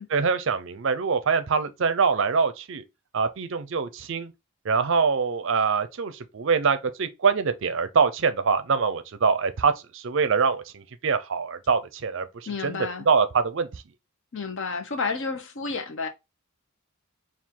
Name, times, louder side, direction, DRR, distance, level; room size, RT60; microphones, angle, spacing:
voice 1, 0.1-2.8 3.1-4.3 4.6-13.8, right 5 dB, 55° right, 0.5 m, -24 dB
voice 2, 12.5-13.1 14.3-16.1, left 4 dB, 55° left, 0.7 m, -31 dB
4.5 x 2.4 x 3.6 m
head